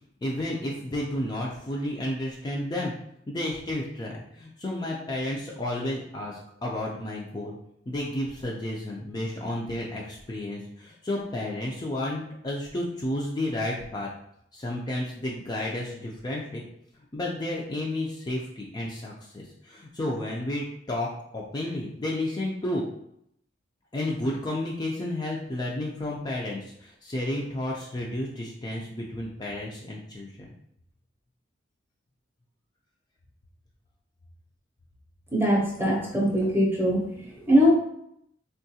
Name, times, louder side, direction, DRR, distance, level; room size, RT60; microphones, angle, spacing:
voice 1, 0.2-2.9 3.3-7.6 7.9-14.1 14.5-16.6 17.1-22.8 23.9-30.5, left 1 dB, 20° left, -3 dB, 0.3 m, -32 dB
voice 2, 35.3-37.7, equal, 10° right, -2 dB, 0.6 m, -22 dB
3.5 x 2.3 x 2.7 m, 0.74 s
head